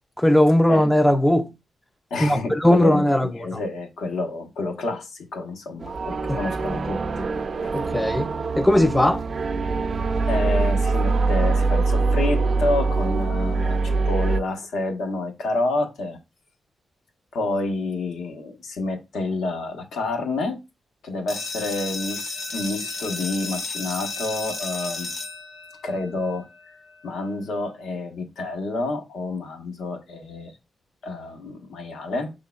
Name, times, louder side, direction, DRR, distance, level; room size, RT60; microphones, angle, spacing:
voice 1, 0.2-1.5 2.2-3.3 6.3-6.4 7.7-8.3 8.6-9.2, left 1 dB, 10° left, 0.4 m, -18 dB
voice 2, 2.1-7.3 7.6-7.7 10.3-16.2 17.3-20.6 21.0-25.1 25.8-26.7 27.0-30.5 31.0-32.3, left 2 dB, 85° left, 1.1 m, -29 dB
sound 1, 5.8-14.4, right 3 dB, 50° right, 0.5 m, -23 dB
sound 2, 21.3-26.7, left 3 dB, 55° left, 0.9 m, -33 dB
6.0 x 3.7 x 2.3 m
cardioid pair, 90°, 0 cm